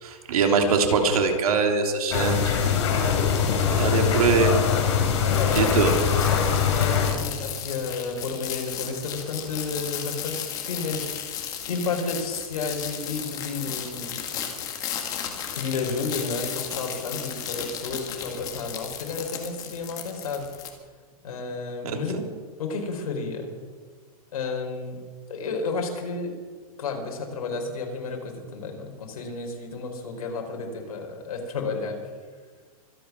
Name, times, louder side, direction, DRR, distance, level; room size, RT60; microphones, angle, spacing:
voice 1, 0.0-2.6 3.7-4.6 5.5-5.9 21.8-22.2, right 5 dB, 70° right, 3 dB, 3.2 m, -22 dB
sound 1, 2.1-7.1, left 7 dB, 50° left, 3.7 m, -22 dB
voice 2, 5.2-5.8 6.3-10.4 10.6-14.2 15.5-20.4 21.2-22.2 22.6-23.6 24.3-25.0 25.3-26.4 26.8-32.0, left 4 dB, 70° left, 3 dB, 4.3 m, -32 dB
sound 2, 5.3-20.7, left 9 dB, 20° left, 1.7 m, -35 dB
25.0 x 9.5 x 6.1 m, 1.5 s
supercardioid pair, 175°, 19 cm